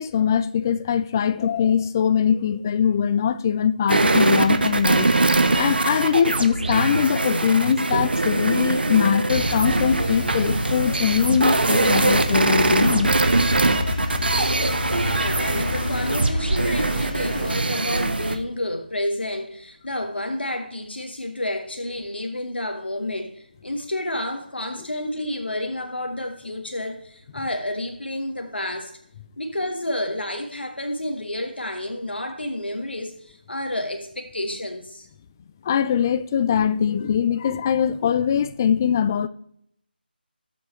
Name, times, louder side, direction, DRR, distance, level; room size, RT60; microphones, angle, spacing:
voice 1, 0.0-5.1 5.6-13.1 35.6-39.3, left 8 dB, 20° left, 0.4 m, -22 dB
sound 1, 3.9-18.4, right 2 dB, 65° right, 1.3 m, -22 dB
sound 2, 9.3-17.5, left 3 dB, 50° left, 1.9 m, -30 dB
voice 2, 15.1-28.9 29.4-35.1, left 1 dB, 80° left, 1.5 m, -30 dB
18.5 x 7.4 x 3.2 m
figure-of-eight pair, 160°, 6 cm